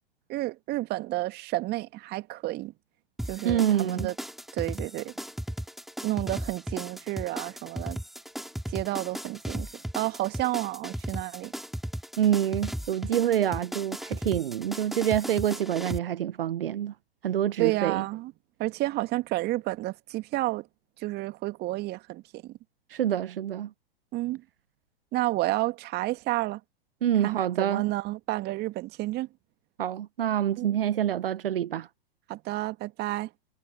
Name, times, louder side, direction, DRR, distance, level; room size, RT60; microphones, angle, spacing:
voice 1, 0.3-2.7 3.3-4.2 4.5-5.1 6.0-8.0 8.7-11.5 17.6-18.3 18.6-20.7 21.0-22.5 24.1-24.4 25.1-26.6 27.1-29.3 30.6-30.8 32.3-33.3, right 18 dB, 35° right, 2.2 m, -30 dB
sound 1, 3.2-16.0, equal, ahead, 3.1 m, -36 dB
voice 2, 3.4-4.1 12.2-16.9 17.2-18.0 22.9-23.7 27.0-27.8 29.8-31.9, right 10 dB, 65° right, 0.9 m, -26 dB
figure-of-eight pair, 100°, 30 cm